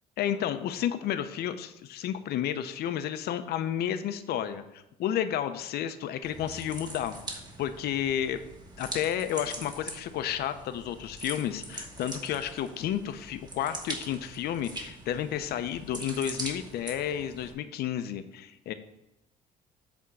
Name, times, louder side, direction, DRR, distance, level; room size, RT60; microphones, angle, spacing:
voice 1, 0.2-8.4 8.8-18.7, left 10 dB, 70° left, 10 dB, 0.7 m, -31 dB
sound 1, 6.2-17.5, right 2 dB, 25° right, 1.4 m, -42 dB
8.2 x 3.6 x 6.3 m, 0.92 s
cardioid pair, 110°, 17 cm